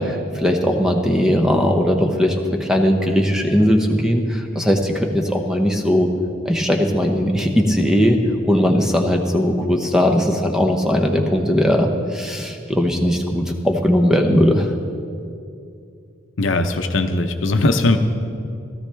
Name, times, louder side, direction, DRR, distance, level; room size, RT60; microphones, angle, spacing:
voice 1, 0.0-6.1 6.4-14.7, equal, 5° right, 3 dB, 0.8 m, -18 dB
voice 2, 16.4-18.0, left 2 dB, 65° left, 6 dB, 0.8 m, -19 dB
16.5 x 13.5 x 3.4 m, 2.5 s
head